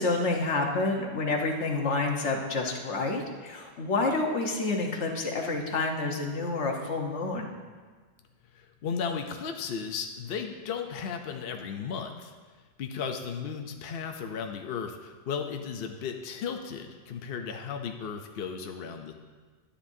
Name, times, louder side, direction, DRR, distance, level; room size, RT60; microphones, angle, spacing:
voice 1, 0.0-7.5, left 3 dB, 80° left, 2 dB, 1.4 m, -28 dB
voice 2, 8.5-12.3 12.8-19.1, left 6 dB, 60° left, 4 dB, 0.8 m, -35 dB
11.5 x 10.0 x 2.7 m, 1.5 s
omnidirectional pair, 1.2 m